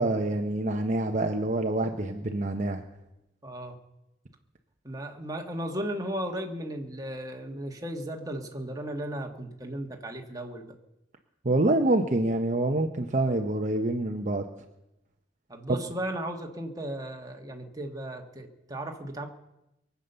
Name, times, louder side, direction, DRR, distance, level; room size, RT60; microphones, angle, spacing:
voice 1, 0.0-2.8 11.4-14.4, right 2 dB, 40° right, 4 dB, 0.9 m, -26 dB
voice 2, 3.4-3.7 4.8-10.7 15.5-19.3, right 1 dB, 20° right, 2 dB, 1.6 m, -35 dB
23.0 x 8.4 x 6.8 m, 0.91 s
head